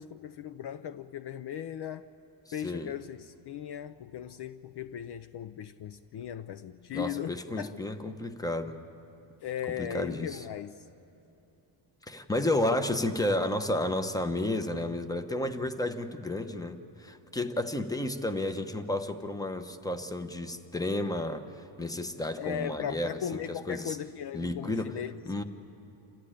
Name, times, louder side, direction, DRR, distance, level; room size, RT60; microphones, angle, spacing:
voice 1, 0.0-2.1 2.5-7.7 9.4-10.8 22.4-25.1, left 9 dB, 55° left, 0.6 m, -37 dB
voice 2, 2.6-2.9 6.9-8.9 9.8-10.4 12.1-23.1 23.5-24.0 24.3-25.4, left 1 dB, 5° left, 0.9 m, -32 dB
27.0 x 14.5 x 10.0 m
cardioid pair, 120°, 49 cm